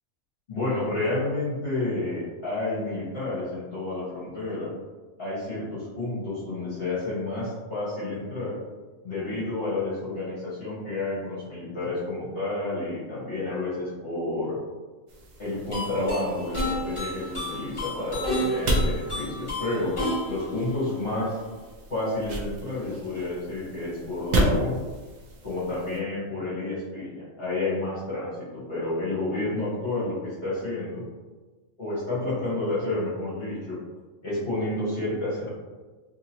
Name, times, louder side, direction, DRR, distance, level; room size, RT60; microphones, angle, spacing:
voice 1, 0.5-4.7 5.2-8.6 9.0-14.6 15.4-19.9 20.3-21.4 21.9-24.8 25.4-31.0 31.8-33.8 34.2-35.5, left 2 dB, 50° left, -10 dB, 1.3 m, -30 dB
sound 1, 15.1-26.0, right 1 dB, 65° right, 0.4 m, -32 dB
sound 2, 15.7-21.6, left 1 dB, 25° left, 1.0 m, -32 dB
2.8 x 2.8 x 2.7 m, 1.3 s
omnidirectional pair, 1.3 m